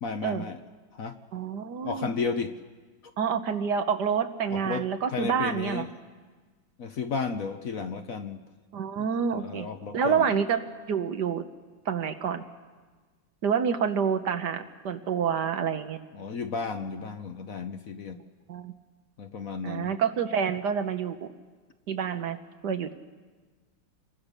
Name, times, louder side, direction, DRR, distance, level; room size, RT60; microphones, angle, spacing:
voice 1, 0.0-0.6 0.9-1.2 1.8-2.5 4.5-5.9 6.8-8.4 9.3-10.4 16.1-18.2 19.2-19.9, left 5 dB, 55° left, 8 dB, 1.1 m, -33 dB
voice 2, 1.3-2.1 3.2-5.9 8.7-9.7 9.9-10.6 10.9-11.4 11.9-12.4 13.4-16.0 18.5-18.7 19.6-21.3 21.9-22.4 22.6-22.9, right 7 dB, 65° right, 8 dB, 1.6 m, -28 dB
27.0 x 22.0 x 6.7 m, 1.4 s
omnidirectional pair, 2.0 m